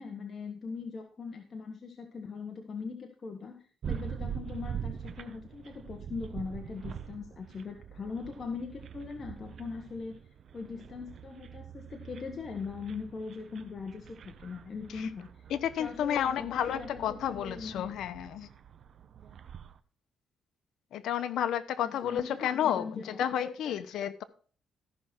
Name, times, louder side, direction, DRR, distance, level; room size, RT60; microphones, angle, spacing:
voice 1, 0.0-10.2 10.5-15.3 15.8-17.9 21.8-23.7, left 5 dB, 40° left, 1.4 m, -40 dB
sound 1, 3.8-19.8, right 8 dB, 60° right, 0.8 m, -44 dB
voice 2, 15.5-18.5 20.9-24.2, left 9 dB, 80° left, 0.9 m, -31 dB
14.0 x 6.0 x 4.5 m
cardioid pair, 95°, 0 cm